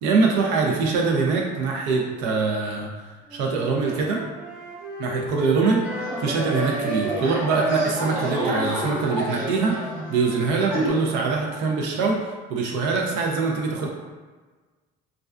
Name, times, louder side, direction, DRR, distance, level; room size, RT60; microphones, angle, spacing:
voice 1, 0.0-2.9 3.3-4.2 5.0-5.8 6.2-12.2 12.5-13.9, right 4 dB, 80° right, 0 dB, 0.5 m, -23 dB
sound 1, 3.3-7.1 7.4-11.8, right 1 dB, 5° right, 0.3 m, -35 dB
sound 2, 5.8-10.9, right 1 dB, 60° right, 1.0 m, -29 dB
2.3 x 2.2 x 2.4 m, 1.4 s
cardioid pair, 175°, 18 cm